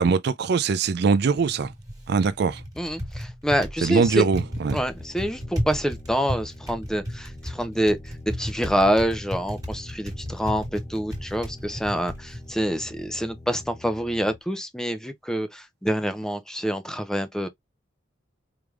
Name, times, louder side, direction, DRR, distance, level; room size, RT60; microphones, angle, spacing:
voice 1, 0.0-1.7 2.1-2.6 3.8-4.8, right 5 dB, 60° right, 0.4 m, -22 dB
Typing, 1.2-13.7, equal, 20° right, 1.7 m, -35 dB
voice 2, 2.8-4.3 4.7-8.0 8.4-17.5, equal, 5° left, 0.6 m, -26 dB
sound 1, 3.9-14.4, left 2 dB, 25° left, 1.1 m, -47 dB
4.8 x 3.4 x 2.3 m
head